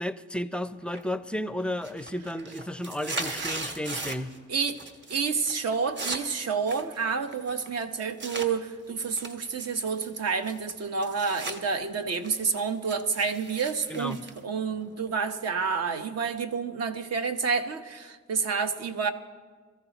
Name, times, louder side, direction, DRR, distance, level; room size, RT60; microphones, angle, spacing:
voice 1, 0.0-4.3 13.9-14.2, left 1 dB, 5° left, 12 dB, 0.5 m, -33 dB
sound 1, 0.9-1.4 1.7-4.4 4.7-5.2 5.5-8.5 9.0-11.6 11.9-15.1, right 2 dB, 35° right, 1.5 m, -38 dB
voice 2, 4.5-4.8 5.1-14.2 14.4-19.1, right 5 dB, 55° right, 8 dB, 1.1 m, -29 dB
22.5 x 14.5 x 3.0 m, 1.5 s
cardioid pair, 90°, 30 cm